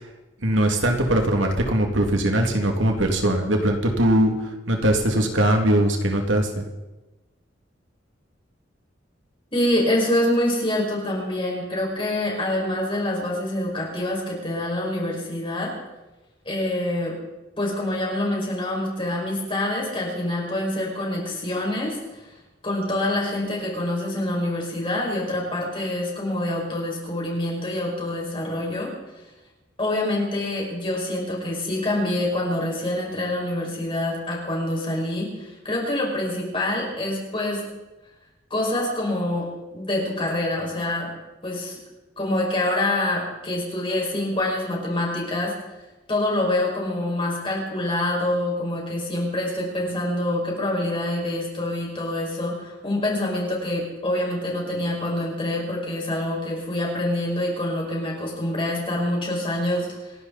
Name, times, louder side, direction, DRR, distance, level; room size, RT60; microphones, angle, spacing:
voice 1, 0.4-6.7, right 1 dB, 85° right, 3 dB, 2.5 m, -21 dB
voice 2, 9.5-15.7 16.4-17.1 17.6-22.2 22.6-28.9 29.8-37.6 38.5-39.5 39.7-41.1 41.4-41.8 42.2-45.5 46.1-60.1, left 1 dB, 30° left, -2 dB, 5.7 m, -26 dB
28.0 x 11.5 x 4.2 m, 1.1 s
head